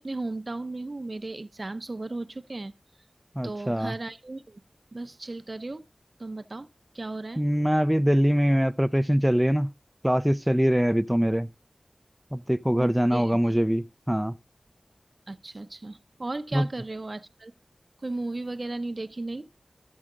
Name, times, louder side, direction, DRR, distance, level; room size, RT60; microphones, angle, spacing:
voice 1, 0.0-2.7 3.4-4.6 4.9-5.9 6.2-6.7 6.9-7.4 12.7-13.4 15.3-17.5 18.0-19.5, right 2 dB, 55° right, 0.6 m, -35 dB
voice 2, 3.4-3.9 7.4-9.7 10.0-11.5 12.3-14.3 16.5-16.6, equal, 5° right, 0.5 m, -23 dB
13.5 x 6.3 x 3.7 m
wide cardioid pair, 45°, 0 cm